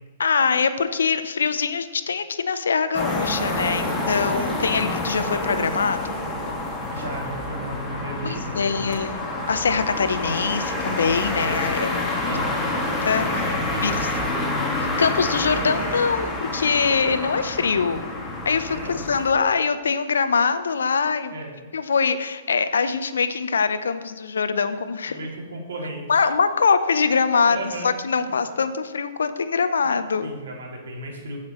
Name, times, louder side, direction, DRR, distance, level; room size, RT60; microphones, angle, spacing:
voice 1, 0.2-6.2 8.2-12.3 13.0-13.4 13.8-13.9 15.0-18.0 18.4-21.3 21.7-25.2 26.1-30.3, left 5 dB, 80° left, 11 dB, 0.7 m, -23 dB
sound 1, 2.9-19.3, left 2 dB, 15° left, 2.0 m, -27 dB
voice 2, 6.9-9.0 12.2-12.6 13.4-14.6 18.7-19.2 21.3-21.5 25.1-26.2 27.4-27.9 30.2-31.4, right 1 dB, 70° right, -1 dB, 2.4 m, -34 dB
15.0 x 5.9 x 3.1 m, 1.3 s
hypercardioid pair, 120°, 0 cm